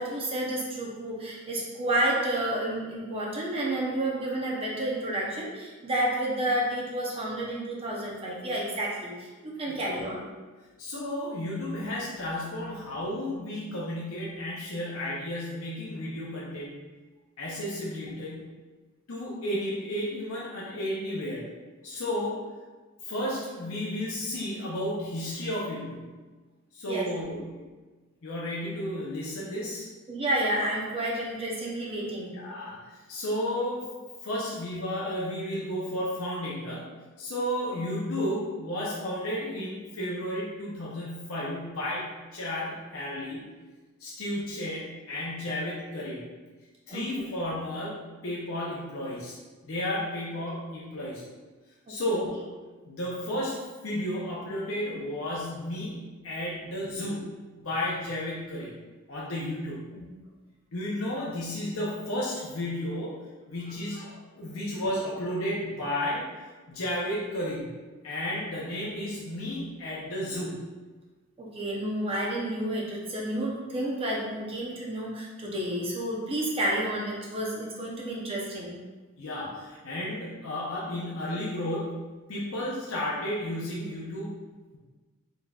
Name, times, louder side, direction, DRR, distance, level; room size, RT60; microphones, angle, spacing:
voice 1, 0.0-10.2 18.0-18.1 26.9-27.1 30.1-32.3 46.9-47.0 51.9-52.2 59.9-60.0 71.4-78.8, right 1 dB, 25° right, -4 dB, 0.7 m, -30 dB
voice 2, 10.8-16.7 17.4-18.5 19.1-21.4 21.8-22.4 23.0-26.1 26.7-27.7 28.2-29.9 32.3-33.9 34.2-36.8 37.2-43.5 44.0-46.2 46.9-49.4 49.6-51.2 51.9-52.5 52.9-58.7 59.1-59.9 60.7-66.3 66.7-67.7 68.0-70.6 79.2-84.3, left 1 dB, 70° left, -6 dB, 0.7 m, -33 dB
3.9 x 3.9 x 2.3 m, 1.3 s
head